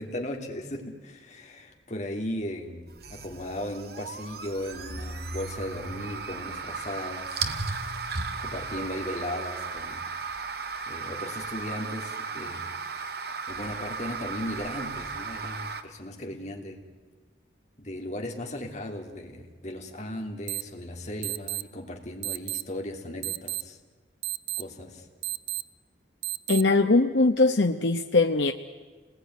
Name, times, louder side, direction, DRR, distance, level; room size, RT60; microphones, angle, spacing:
voice 1, 0.0-7.5 8.3-10.1 10.9-12.7 13.5-16.8 17.8-23.8 24.6-25.1, left 1 dB, 40° left, 3 dB, 3.1 m, -37 dB
sound 1, 2.9-15.8, right 4 dB, 55° right, 1.6 m, -35 dB
sound 2, 20.5-20.6 21.2-21.6 22.2-22.6 23.2-23.6 24.2-24.6 25.2-25.6 26.2-26.6, right 15 dB, 75° right, 0.7 m, -31 dB
voice 2, 26.5-28.5, left 3 dB, 80° left, 5 dB, 1.0 m, -21 dB
28.5 x 20.0 x 9.5 m, 1.4 s
head